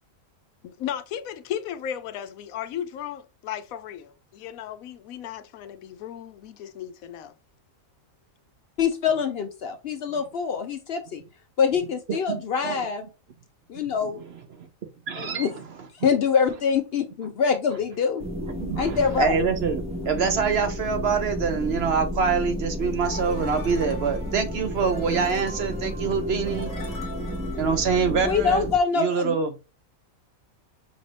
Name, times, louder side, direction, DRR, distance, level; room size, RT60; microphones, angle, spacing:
voice 1, 0.6-7.3, left 10 dB, 85° left, 1.0 m, -35 dB
voice 2, 8.8-11.2 11.6-13.0 13.7-14.2 15.2-15.5 16.0-18.2 18.8-19.4 28.1-29.4, left 6 dB, 60° left, 0.6 m, -24 dB
voice 3, 12.1-12.8 13.8-13.9 14.6-14.7 15.1-15.5 18.6-26.7 27.6-28.6 29.0-29.5, right 6 dB, 55° right, 0.8 m, -25 dB
sound 1, 18.2-28.8, equal, 10° right, 0.5 m, -32 dB
sound 2, 23.0-28.5, left 2 dB, 45° left, 1.3 m, -41 dB
5.1 x 2.6 x 3.2 m
omnidirectional pair, 1.4 m